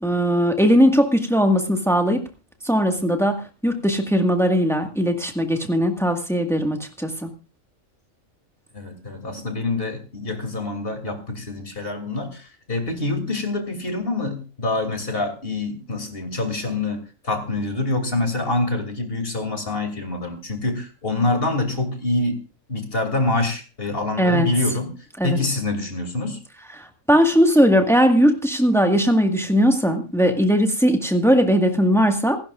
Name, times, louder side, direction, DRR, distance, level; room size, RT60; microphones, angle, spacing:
voice 1, 0.0-2.2 2.6-7.3 24.2-24.5 25.2-25.4 26.8-32.4, equal, ahead, 5 dB, 1.7 m, -19 dB
voice 2, 8.7-22.4 22.7-24.9 25.2-26.4, left 2 dB, 45° left, 6 dB, 3.2 m, -26 dB
26.5 x 12.0 x 2.5 m, 0.33 s
omnidirectional pair, 1.4 m